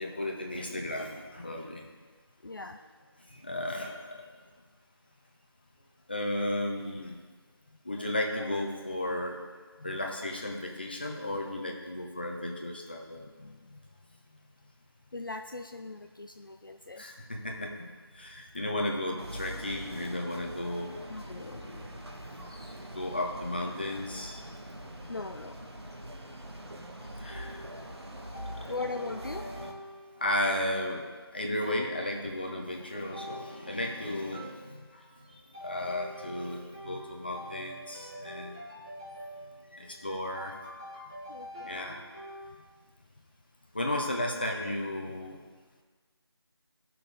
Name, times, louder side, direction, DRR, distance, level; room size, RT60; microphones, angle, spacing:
voice 1, 0.0-1.8 2.5-2.6 3.3-4.2 6.1-7.2 7.9-9.4 9.8-13.2 17.0-17.7 18.2-21.0 22.9-24.4 27.2-27.6 28.5-28.7 29.6-29.7 30.2-31.1 31.3-34.6 35.6-38.6 39.7-40.5 41.6-42.0 43.7-45.4, left 1 dB, 20° left, 0 dB, 0.8 m, -34 dB
voice 2, 2.4-2.8 9.8-10.0 13.2-13.8 15.1-17.1 21.1-22.0 25.0-25.7 28.7-29.5 41.3-42.0, left 3 dB, 50° left, 6 dB, 0.4 m, -40 dB
sound 1, 19.2-29.7, right 1 dB, 70° right, 1.5 m, -43 dB
sound 2, 27.3-42.5, equal, 10° right, 0.9 m, -47 dB
16.5 x 6.0 x 3.5 m, 1.4 s
figure-of-eight pair, 175°, 14 cm